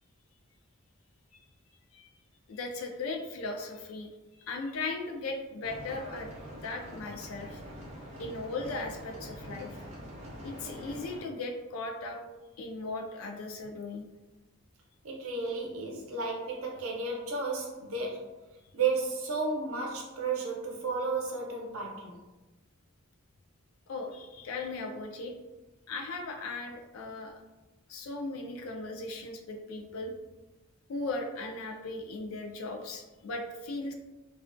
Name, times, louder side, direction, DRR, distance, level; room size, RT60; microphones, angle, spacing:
voice 1, 2.5-4.1 4.4-6.3 6.6-7.6 8.2-9.8 10.4-12.2 12.6-14.1 23.9-25.3 25.9-27.4 27.9-30.1 30.9-33.9, left 3 dB, 80° left, 3 dB, 0.4 m, -37 dB
sound 1, 5.6-11.2, equal, 30° right, 0.5 m, -44 dB
voice 2, 15.0-18.3 18.7-22.2, right 4 dB, 80° right, 0 dB, 0.6 m, -33 dB
2.4 x 2.2 x 2.4 m, 1.1 s
head